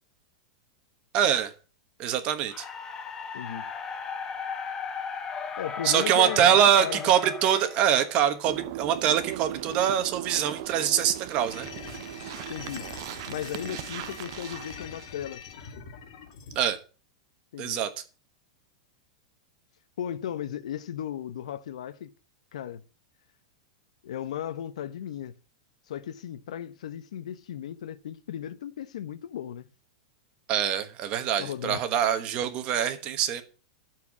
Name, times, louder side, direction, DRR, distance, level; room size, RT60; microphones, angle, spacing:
voice 1, 1.1-1.5 2.0-2.6 5.8-11.7 16.5-16.8 17.6-17.9 30.5-33.4, right 9 dB, 30° right, 1.2 m, -24 dB
sound 1, 2.5-8.6, left 5 dB, 15° left, 1.1 m, -36 dB
voice 2, 3.3-3.6 5.6-7.1 12.5-12.9 13.3-15.4 17.5-17.8 20.0-22.1 22.5-22.8 24.0-25.4 25.9-29.6 31.4-31.8, left 10 dB, 80° left, 0.9 m, -36 dB
sound 2, 8.4-15.2, right 14 dB, 45° right, 0.6 m, -38 dB
sound 3, 11.5-16.7, left 7 dB, 55° left, 2.2 m, -43 dB
13.0 x 4.7 x 7.3 m
supercardioid pair, 170°, 4 cm